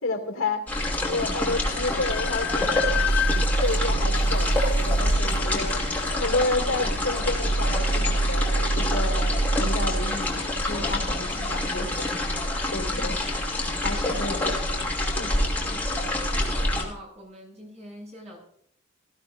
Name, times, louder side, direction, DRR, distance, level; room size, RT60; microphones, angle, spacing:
voice 1, 0.0-2.9 3.6-12.1 12.7-13.2 13.8-14.6 15.1-15.3, left 2 dB, 80° left, 3 dB, 2.6 m, -31 dB
sound 1, 0.7-16.8, left 1 dB, 10° left, 2.7 m, -27 dB
Train, 1.2-1.3 1.6-6.1, left 10 dB, 55° left, 0.6 m, -32 dB
sound 2, 2.3-5.7 7.4-11.5, right 2 dB, 80° right, 2.6 m, -26 dB
voice 2, 12.9-13.5 15.7-16.2 16.8-18.4, equal, 35° right, -2 dB, 7.3 m, -45 dB
18.5 x 15.0 x 2.6 m, 0.68 s
head